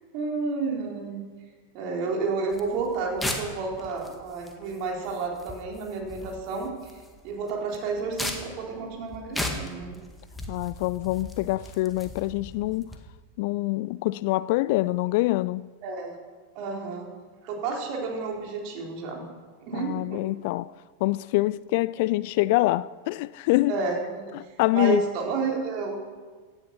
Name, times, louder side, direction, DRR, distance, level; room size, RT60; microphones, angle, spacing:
voice 1, 0.1-1.2 1.7-10.0 15.8-16.2 16.6-17.1 17.4-19.3 19.6-20.2 23.7-24.3 24.7-26.0, right 4 dB, 45° right, 3.7 m, -31 dB
sound 1, 2.5-13.0, left 1 dB, 5° left, 1.9 m, -38 dB
voice 2, 10.5-12.9 13.4-15.7 19.7-20.7 21.0-23.7 24.3-25.0, left 19 dB, 50° left, 0.3 m, -25 dB
16.5 x 10.5 x 5.9 m
figure-of-eight pair, 90°, 0 cm